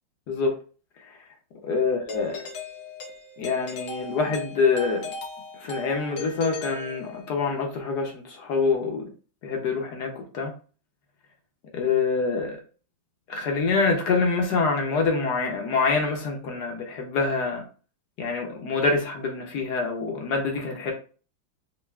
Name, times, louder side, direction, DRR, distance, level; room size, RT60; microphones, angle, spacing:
voice 1, 1.6-2.4 3.4-5.1 5.6-9.1 9.4-10.5 11.7-12.6 13.3-17.6 18.2-20.9, left 4 dB, 65° left, 1.2 m, -25 dB
Doorbell, 2.1-7.5, left 4 dB, 90° left, 0.7 m, -38 dB
5.4 x 2.3 x 2.3 m
omnidirectional pair, 2.1 m